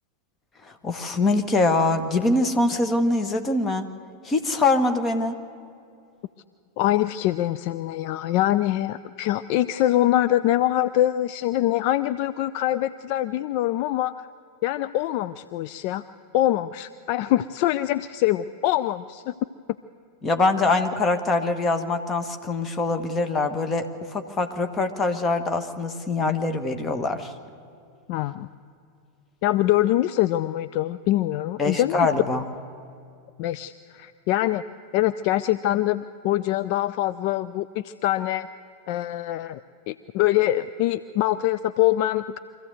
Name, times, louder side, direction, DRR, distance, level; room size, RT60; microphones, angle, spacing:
voice 1, 0.6-3.9 4.2-5.4 20.2-27.3 31.6-32.5, left 2 dB, 20° left, 7 dB, 1.4 m, -23 dB
voice 2, 6.8-14.1 14.6-16.0 16.3-19.3 28.1-28.5 29.4-32.1 33.4-34.6 34.9-38.5 38.9-39.6 39.9-42.4, left 14 dB, 45° left, 12 dB, 0.4 m, -24 dB
24.5 x 15.0 x 7.9 m, 2.4 s
figure-of-eight pair, 90°, 0 cm